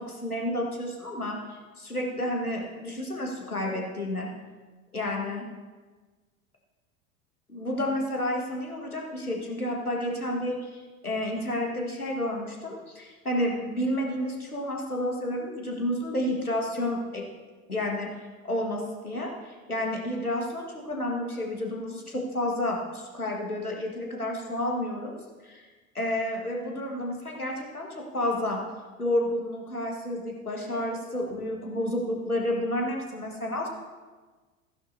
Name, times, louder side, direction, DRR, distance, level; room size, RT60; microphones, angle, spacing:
voice 1, 0.0-4.3 4.9-5.5 7.5-17.2 17.7-18.1 18.4-25.2 25.4-25.7 26.0-28.6 29.0-33.7, left 1 dB, 90° left, 0 dB, 1.8 m, -30 dB
15.5 x 10.5 x 2.8 m, 1.3 s
figure-of-eight pair, 80°, 43 cm